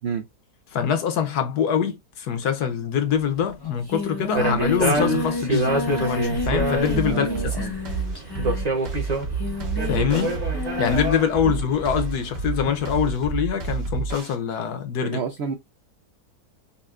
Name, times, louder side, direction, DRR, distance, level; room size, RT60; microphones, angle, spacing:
voice 1, 0.7-7.3 7.6-7.7 9.8-10.4 10.8-15.2, left 8 dB, 70° left, 1.3 m, -24 dB
Singing, 3.2-3.3 3.5-11.2, left 2 dB, 35° left, 0.4 m, -31 dB
sound 1, 4.3-12.9, right 2 dB, 30° right, 0.9 m, -27 dB
sound 2, 6.4-14.4, right 5 dB, 55° right, 1.5 m, -29 dB
voice 2, 7.0-7.8 11.4-11.6 15.0-15.6, right 6 dB, 75° right, 0.6 m, -30 dB
5.5 x 2.2 x 2.4 m
omnidirectional pair, 1.8 m